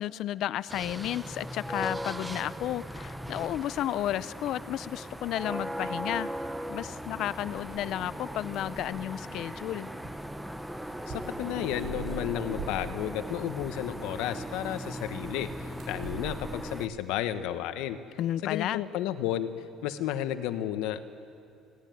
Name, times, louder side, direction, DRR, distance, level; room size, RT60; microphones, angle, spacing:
voice 1, 0.0-6.3 6.7-9.9 18.2-18.8, left 12 dB, 60° left, 17 dB, 0.6 m, -32 dB
sound 1, 0.7-16.9, equal, 5° right, 0.8 m, -38 dB
sound 2, 4.9-17.3, right 4 dB, 50° right, 6.0 m, -46 dB
voice 2, 11.1-18.0 18.4-19.5 19.8-21.0, left 11 dB, 85° left, 10 dB, 1.2 m, -32 dB
21.0 x 17.5 x 9.3 m, 2.7 s
cardioid pair, 135°, 0 cm